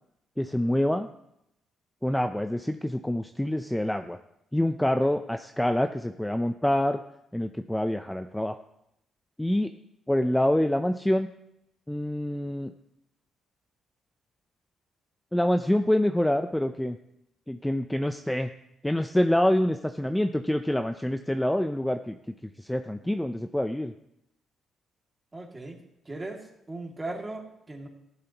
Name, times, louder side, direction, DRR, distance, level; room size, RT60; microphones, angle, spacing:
voice 1, 0.4-1.1 2.0-4.2 4.5-7.0 7.3-8.6 9.4-9.7 10.1-11.3 11.9-12.7 15.3-17.0 17.5-18.5 18.8-22.2 22.6-23.9, left 1 dB, 5° left, 7 dB, 0.6 m, -26 dB
voice 2, 25.3-25.8 26.1-26.4 26.7-27.9, right 2 dB, 20° right, 1 dB, 2.4 m, -37 dB
15.0 x 11.5 x 3.0 m, 0.82 s
cardioid pair, 90°, 0 cm